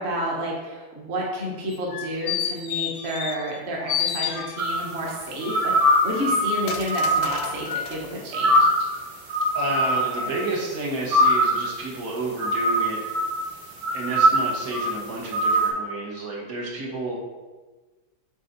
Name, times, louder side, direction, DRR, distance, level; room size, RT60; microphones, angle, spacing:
voice 1, 0.0-8.9, equal, 40° right, -3 dB, 1.4 m, -30 dB
sound 1, 1.7-3.6 3.9-4.9 5.4-8.0 8.5-8.6, left 9 dB, 80° left, 1.1 m, -31 dB
sound 2, 4.6-5.1 5.5-8.0 8.3-8.9 9.3-10.6 11.1-11.8 12.4-13.5 13.8-14.9 15.3-15.7, equal, 85° right, 1.7 m, -22 dB
voice 2, 9.5-13.0 13.9-17.2, right 2 dB, 65° right, -3 dB, 1.7 m, -30 dB
8.1 x 3.8 x 4.1 m, 1.3 s
omnidirectional pair, 1.8 m